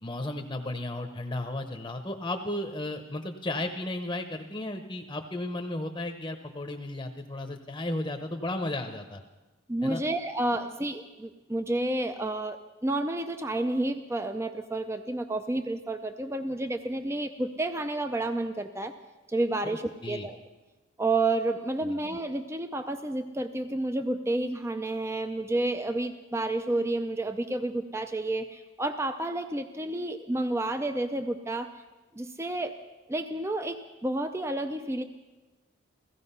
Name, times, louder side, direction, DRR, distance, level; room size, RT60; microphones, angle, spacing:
voice 1, 0.0-9.2 9.8-10.0 19.6-20.3 21.8-22.0, left 1 dB, 20° left, 5 dB, 0.8 m, -34 dB
voice 2, 9.7-18.9 19.3-20.4 21.0-31.7 32.1-32.7 33.1-35.0, right 2 dB, 15° right, 9 dB, 0.5 m, -30 dB
16.0 x 15.5 x 5.6 m, 1.2 s
head